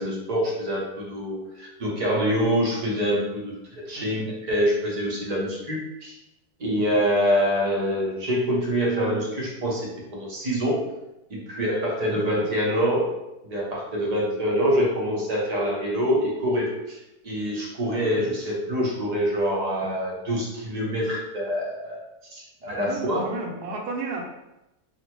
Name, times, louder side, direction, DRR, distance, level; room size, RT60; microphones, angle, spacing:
voice 1, 0.0-6.1 6.6-10.8 11.5-13.1 13.5-17.0 17.2-22.0 22.3-23.3, equal, 40° right, -4 dB, 0.5 m, -25 dB
voice 2, 3.9-4.3 6.7-6.8 12.1-12.6 17.8-18.3 22.7-24.2, right 3 dB, 75° right, 0 dB, 1.1 m, -35 dB
3.8 x 2.1 x 2.9 m, 0.92 s
omnidirectional pair, 1.7 m